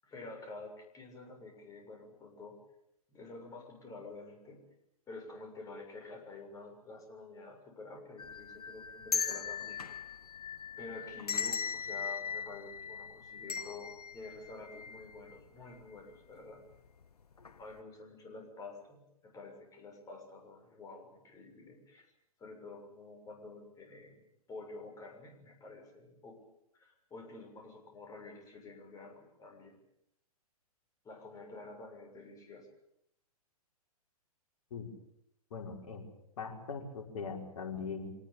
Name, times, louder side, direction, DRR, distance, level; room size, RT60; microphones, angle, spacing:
voice 1, 0.0-2.6 3.1-4.6 5.1-9.8 10.8-16.6 17.6-22.1 22.4-24.2 24.5-26.4 26.7-29.8 31.0-32.7, left 3 dB, 15° left, 2 dB, 6.8 m, -49 dB
sound 1, 8.2-15.4 15.7-15.8 16.7-17.0 17.4-17.6, left 6 dB, 80° left, 1.1 m, -39 dB
voice 2, 35.5-36.1 36.4-38.1, left 5 dB, 55° left, 2 dB, 5.4 m, -41 dB
26.0 x 19.0 x 8.8 m, 0.77 s
figure-of-eight pair, 115°, 19 cm